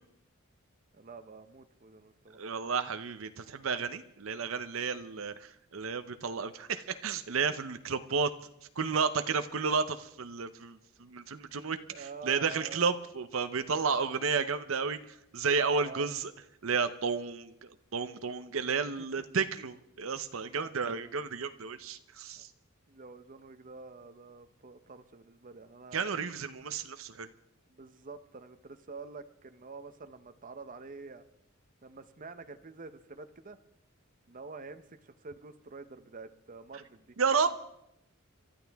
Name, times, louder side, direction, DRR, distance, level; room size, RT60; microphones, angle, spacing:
voice 1, 0.9-2.4 11.9-12.8 15.7-16.1 19.0-19.1 20.6-20.7 22.4-22.5 22.9-26.0 27.7-31.2 31.8-33.6 34.3-37.2, right 4 dB, 40° right, 10 dB, 0.8 m, -47 dB
voice 2, 2.3-8.3 8.8-16.3 16.6-22.5 25.9-27.3 37.2-37.5, right 5 dB, 70° right, 10 dB, 0.7 m, -32 dB
28.0 x 13.0 x 3.5 m, 0.82 s
head